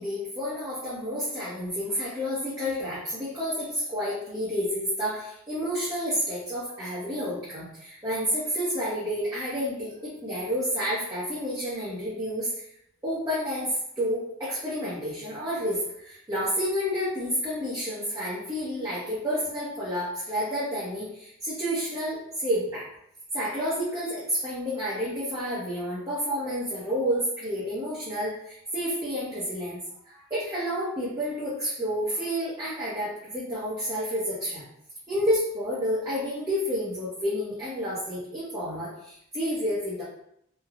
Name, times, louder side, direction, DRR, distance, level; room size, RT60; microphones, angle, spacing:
voice 1, 0.0-12.5 13.0-22.9 23.3-34.6 35.1-40.0, equal, 15° right, -10 dB, 0.6 m, -30 dB
3.2 x 2.0 x 2.3 m, 0.75 s
head